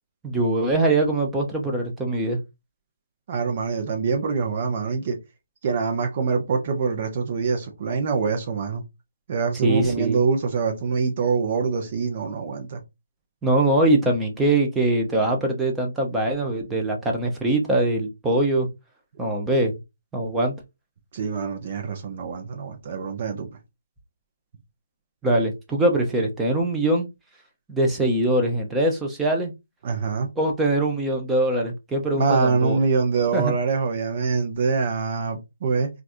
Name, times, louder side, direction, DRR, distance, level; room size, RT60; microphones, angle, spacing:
voice 1, 0.2-2.4 9.6-10.2 13.4-18.7 19.2-19.7 20.1-20.5 25.2-27.1 27.7-29.5 30.4-32.8 33.3-33.5, right 1 dB, 5° right, 0.9 m, -22 dB
voice 2, 3.3-5.2 5.6-8.8 9.3-12.8 21.1-23.5 29.8-30.3 32.1-35.9, right 5 dB, 35° right, 0.9 m, -24 dB
4.5 x 2.6 x 2.7 m
figure-of-eight pair, 150°, 0 cm